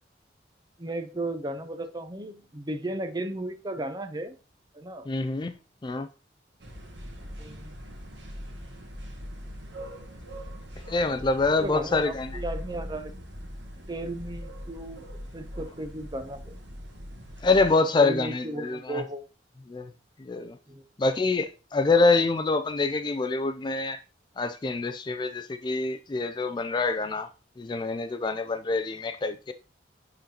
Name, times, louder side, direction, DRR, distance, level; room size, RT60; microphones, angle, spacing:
voice 1, 0.8-4.4 4.7-5.1 7.4-7.7 11.6-13.1 13.9-15.0 15.3-16.6 18.0-19.3 20.7-20.8, right 1 dB, 20° right, 0.6 m, -35 dB
voice 2, 5.1-5.5 5.8-6.1 10.9-12.3 17.4-19.0 19.7-19.9 20.2-20.6 21.0-24.0 24.4-27.3 27.6-29.5, left 3 dB, 25° left, 0.3 m, -26 dB
sound 1, 6.6-17.7, equal, 75° right, 1.3 m, -41 dB
10.5 x 3.9 x 2.8 m
head